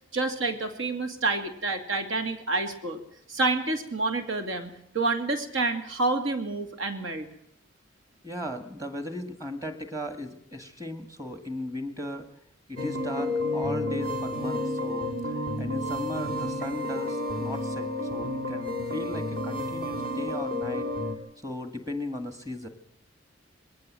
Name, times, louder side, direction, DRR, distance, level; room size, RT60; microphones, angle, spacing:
voice 1, 0.1-3.0 3.3-7.3, right 3 dB, 75° right, 7 dB, 2.5 m, -28 dB
voice 2, 8.2-12.3 12.7-20.9 21.4-22.7, left 1 dB, 15° right, 8 dB, 1.9 m, -36 dB
sound 1, 12.8-21.2, left 1 dB, 45° right, 2.7 m, -31 dB
21.0 x 18.0 x 7.6 m, 0.71 s
head